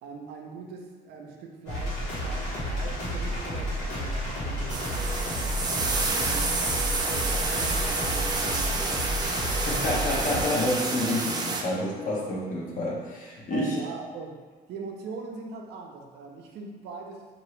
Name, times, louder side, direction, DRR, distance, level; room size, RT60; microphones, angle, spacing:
voice 1, 0.0-5.2 5.5-9.3 13.5-14.4 14.7-17.3, right 4 dB, 75° right, 1 dB, 0.5 m, -41 dB
sound 1, 1.7-10.4, equal, 90° left, 1.2 m, -31 dB
sound 2, 4.7-11.6, right 3 dB, 25° right, 0.3 m, -29 dB
voice 2, 9.5-13.8, left 1 dB, 50° left, -3 dB, 0.8 m, -29 dB
2.8 x 2.5 x 3.1 m, 1.4 s
cardioid pair, 110°, 17 cm